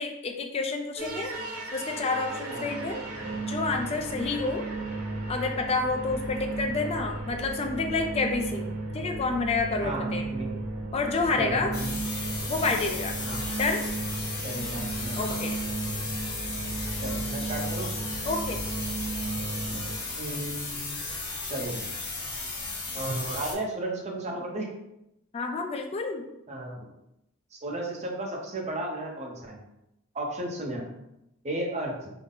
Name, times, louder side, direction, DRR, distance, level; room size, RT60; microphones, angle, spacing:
voice 1, 0.0-1.3 1.7-3.0 3.5-4.7 5.3-10.3 10.9-11.7 12.5-13.1 13.6-13.8 15.2-15.5 18.3-18.6 25.3-26.2, left 3 dB, 25° left, 4 dB, 0.3 m, -29 dB
sound 1, 1.0-20.0, right 2 dB, 70° right, 0.8 m, -34 dB
voice 2, 9.8-10.6 11.4-12.0 13.3-13.4 14.4-15.2 16.8-17.9 20.2-21.0 21.4-21.8 22.9-24.7 26.5-26.8 27.5-29.6 30.1-30.9 31.4-32.1, right 1 dB, 30° right, -1 dB, 0.7 m, -34 dB
sound 2, 11.7-23.5, left 3 dB, 50° left, 0.9 m, -35 dB
3.7 x 2.1 x 3.8 m, 0.85 s
head